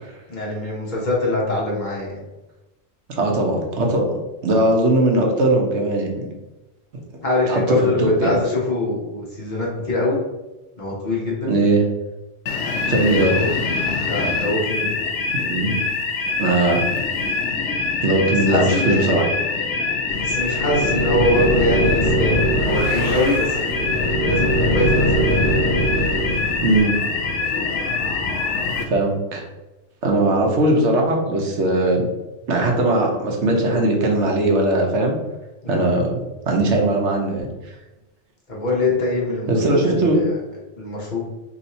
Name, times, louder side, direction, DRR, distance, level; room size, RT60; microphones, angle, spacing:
voice 1, 0.3-2.2 7.2-10.2 10.8-11.5 13.0-13.5 14.0-15.0 15.6-15.8 18.4-19.2 20.2-25.2 35.6-36.0 38.5-40.4 40.8-41.2, left 2 dB, 45° left, -4 dB, 1.1 m, -24 dB
voice 2, 3.2-4.1 4.4-6.3 7.5-8.4 11.5-11.8 12.9-13.3 15.3-15.8 16.4-16.8 18.0-19.3 26.6-26.9 28.9-29.5 30.0-32.1 32.5-35.1 35.7-36.2 36.5-37.5 39.5-40.2, right 2 dB, 75° right, 0 dB, 1.1 m, -19 dB
sound 1, 12.5-28.8, left 4 dB, 90° left, 0.9 m, -24 dB
sound 2, 20.1-26.8, right 1 dB, 65° left, 1.2 m, -22 dB
3.1 x 2.6 x 4.2 m, 1.1 s
omnidirectional pair, 1.2 m